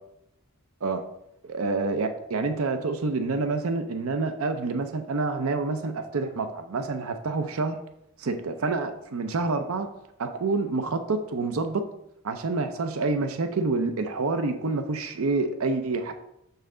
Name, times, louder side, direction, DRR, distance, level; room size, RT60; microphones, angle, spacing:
voice 1, 1.5-7.8 8.2-9.9 10.2-11.8 12.2-16.1, right 3 dB, 80° right, 8 dB, 0.5 m, -27 dB
6.6 x 5.6 x 3.7 m, 0.84 s
head